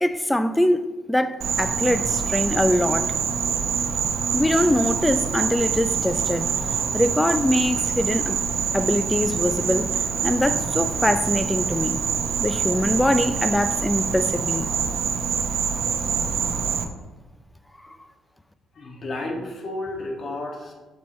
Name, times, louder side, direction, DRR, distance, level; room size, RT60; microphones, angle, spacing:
voice 1, 0.0-3.1 4.3-6.5 6.9-8.4 8.7-10.0 10.2-12.0 12.4-14.7, left 1 dB, 10° left, 0.5 m, -23 dB
Insect, 1.4-16.8, right 6 dB, 70° right, 0.7 m, -25 dB
voice 2, 18.7-20.7, left 2 dB, 45° left, 1.9 m, -32 dB
8.5 x 7.2 x 3.2 m
cardioid pair, 90°, 0 cm